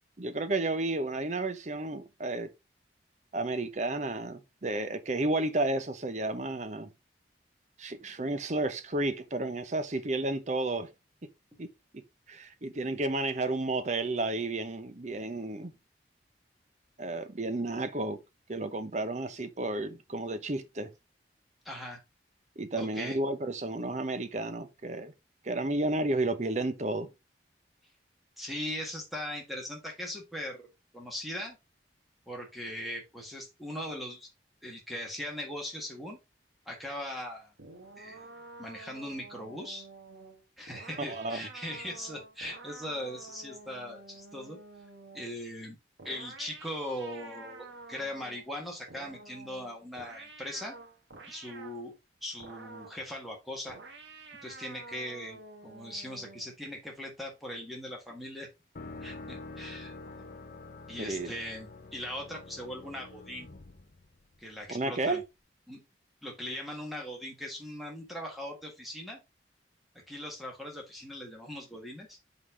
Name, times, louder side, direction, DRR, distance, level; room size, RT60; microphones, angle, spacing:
voice 1, 0.2-2.5 3.3-6.9 7.8-10.9 11.6-11.7 12.3-15.7 17.0-18.2 18.5-20.9 22.6-25.1 25.4-27.1 41.1-41.5 61.0-61.3 64.7-65.2, right 2 dB, 40° right, 0.8 m, -32 dB
voice 2, 21.6-22.0 22.8-23.2 28.4-30.7 30.9-31.6 32.3-34.3 34.6-36.2 36.6-37.5 38.0-38.3 38.6-39.9 40.6-44.6 45.1-45.8 46.0-50.7 51.3-51.9 52.2-53.8 54.4-58.5 59.0-59.9 60.9-63.5 64.4-65.2 65.7-65.8 66.2-69.2 69.9-72.2, left 1 dB, ahead, 1.6 m, -40 dB
sound 1, 37.6-45.4 46.0-48.5 48.9-51.8 52.4-53.0 53.7-56.5, right 3 dB, 85° right, 1.5 m, -49 dB
sound 2, 58.8-64.6, left 3 dB, 50° left, 0.8 m, -46 dB
5.4 x 4.0 x 4.7 m
head